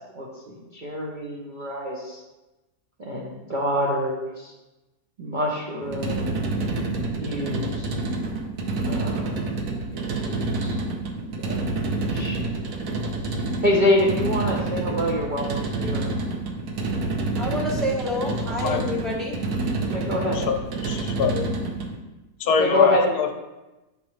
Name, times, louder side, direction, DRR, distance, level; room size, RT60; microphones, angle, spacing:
voice 1, 0.1-2.2 3.0-4.5 5.2-6.8 7.2-7.9 8.8-9.4 9.9-10.7 11.4-11.6 11.9-12.4 13.6-15.4 15.8-16.2 17.3-17.4 19.9-20.4 22.4-23.0, left 1 dB, 40° right, -4 dB, 0.8 m, -26 dB
sound 1, 5.8-22.0, right 2 dB, 75° right, 1.2 m, -28 dB
voice 2, 17.4-19.4, left 1 dB, ahead, -2 dB, 0.8 m, -28 dB
voice 3, 18.3-18.8 20.3-20.4 20.8-21.5 22.4-23.3, left 7 dB, 75° left, 5 dB, 1.1 m, -24 dB
7.1 x 5.2 x 3.1 m, 1.1 s
omnidirectional pair, 1.7 m